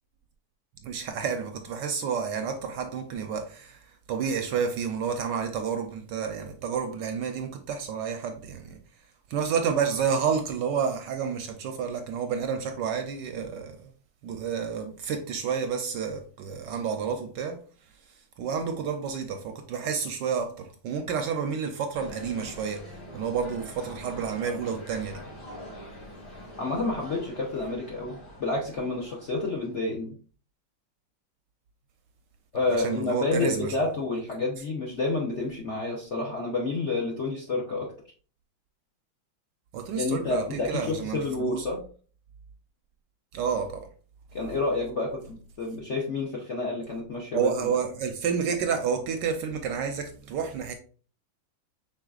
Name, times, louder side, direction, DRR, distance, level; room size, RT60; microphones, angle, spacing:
voice 1, 0.8-3.8 4.1-8.8 9.3-13.7 14.2-17.6 18.4-22.8 23.1-25.2 32.8-33.7 39.7-41.6 43.3-43.9 47.3-50.7, right 6 dB, 75° right, 1.1 m, -30 dB
sound 1, 21.9-29.9, equal, 85° left, 3.4 m, -44 dB
voice 2, 26.6-30.2 32.5-37.9 40.0-41.8 44.3-47.7, left 3 dB, 55° left, 0.8 m, -29 dB
5.5 x 3.9 x 2.4 m
omnidirectional pair, 2.2 m